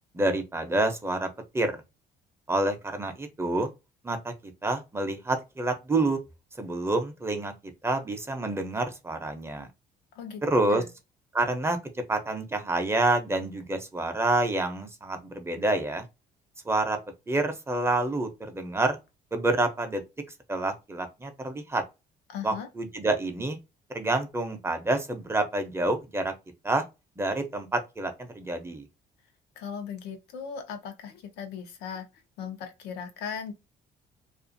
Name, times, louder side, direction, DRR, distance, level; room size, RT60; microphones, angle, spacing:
voice 1, 0.1-1.3 1.5-1.7 2.5-3.7 4.0-6.2 6.6-9.7 10.4-10.8 11.3-16.1 16.6-17.0 17.3-19.0 19.3-20.0 20.5-21.8 22.4-23.6 23.9-26.3 26.6-26.8 27.2-28.9, right 2 dB, 15° right, 0.6 m, -28 dB
voice 2, 10.1-10.9 22.3-22.7 29.6-32.1 32.4-33.5, left 7 dB, 90° left, 0.7 m, -38 dB
2.5 x 2.4 x 2.6 m
cardioid pair, 110°, 17 cm